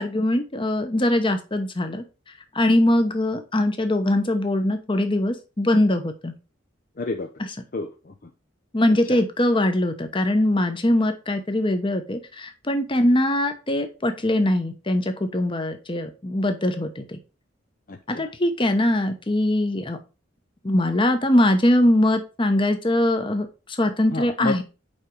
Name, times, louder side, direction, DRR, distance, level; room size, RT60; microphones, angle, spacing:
voice 1, 0.0-2.0 2.5-6.3 8.7-17.2 18.1-20.0 20.6-24.6, left 1 dB, 25° left, 7 dB, 1.0 m, -22 dB
voice 2, 7.0-7.3 7.7-8.1 9.1-9.2 17.9-18.3 24.1-24.6, left 3 dB, 45° left, 5 dB, 0.6 m, -30 dB
5.4 x 5.1 x 4.7 m, 0.31 s
head